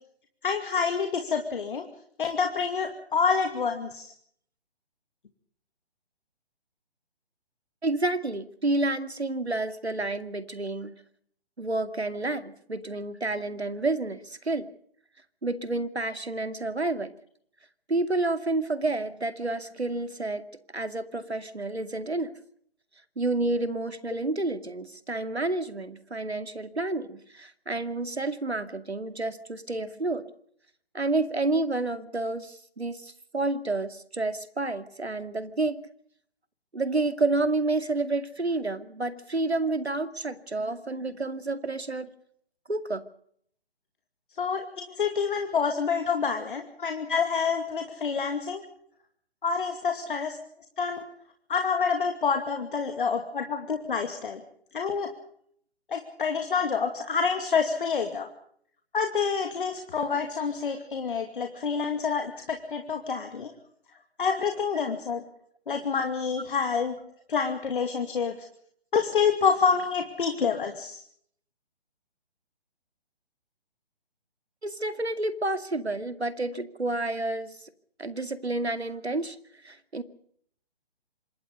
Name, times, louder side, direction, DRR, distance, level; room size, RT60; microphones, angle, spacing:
voice 1, 0.4-1.8 2.2-4.1 44.4-48.6 49.4-50.4 50.8-51.0 51.5-54.4 54.7-55.1 55.9-58.3 58.9-63.5 64.2-65.2 65.7-67.0 67.3-68.3 68.9-71.0, left 5 dB, 55° left, 5 dB, 2.6 m, -27 dB
voice 2, 7.8-11.0 11.6-14.7 15.4-17.2 17.9-20.5 20.7-22.3 23.2-30.3 30.9-35.9 36.7-42.1 42.7-43.0 74.6-77.7 78.0-79.4 79.6-80.0, right 2 dB, 85° right, 11 dB, 2.4 m, -29 dB
26.5 x 21.0 x 5.3 m, 0.63 s
figure-of-eight pair, 140°, 32 cm